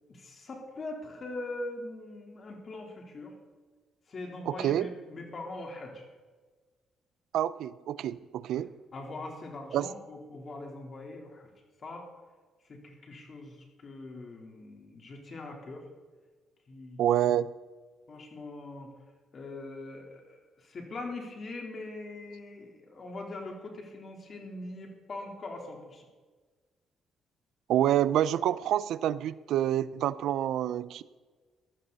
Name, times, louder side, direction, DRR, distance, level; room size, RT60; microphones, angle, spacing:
voice 1, 0.1-3.3 4.1-6.0 8.5-8.7 8.9-11.4 11.8-12.1 12.7-15.9 16.7-17.0 18.1-18.9 19.3-26.1, left 2 dB, 45° left, 1 dB, 3.5 m, -42 dB
voice 2, 4.5-4.9 7.3-8.7 9.7-9.9 17.0-17.5 27.7-31.0, right 11 dB, 80° right, 17 dB, 0.4 m, -27 dB
15.5 x 12.5 x 4.1 m, 1.4 s
cardioid pair, 90°, 0 cm